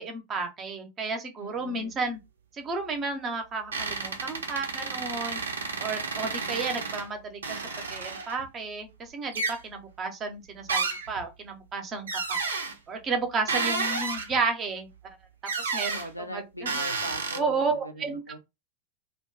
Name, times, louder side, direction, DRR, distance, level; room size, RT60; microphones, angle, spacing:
voice 1, 0.0-2.2 2.5-5.4 5.8-7.6 7.9-12.4 12.9-14.9 15.6-16.0 16.3-16.7 17.3-18.3, right 4 dB, 25° right, 0.8 m, -32 dB
voice 2, 1.4-1.9 15.9-18.4, equal, 85° left, 0.5 m, -40 dB
sound 1, 3.7-7.1 7.4-8.5 9.3-9.6 10.7-11.2 12.1-12.7 13.5-14.4 15.5-16.1 16.7-17.4, right 4 dB, 70° right, 0.5 m, -31 dB
2.6 x 2.3 x 3.5 m
figure-of-eight pair, 90°, 0 cm